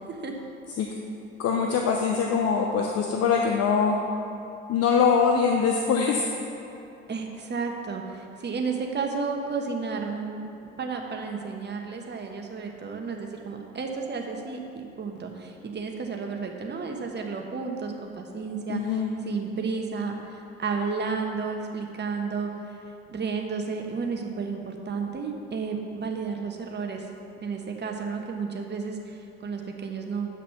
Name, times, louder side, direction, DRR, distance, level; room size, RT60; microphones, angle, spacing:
voice 1, 1.4-4.0 4.7-6.3 18.7-19.2, left 6 dB, 50° left, 1 dB, 0.9 m, -23 dB
voice 2, 7.1-10.5 10.8-22.8 23.1-27.1 27.4-30.3, right 5 dB, 35° right, 2 dB, 1.4 m, -32 dB
9.6 x 5.8 x 5.9 m, 2.8 s
hypercardioid pair, 60°, 30 cm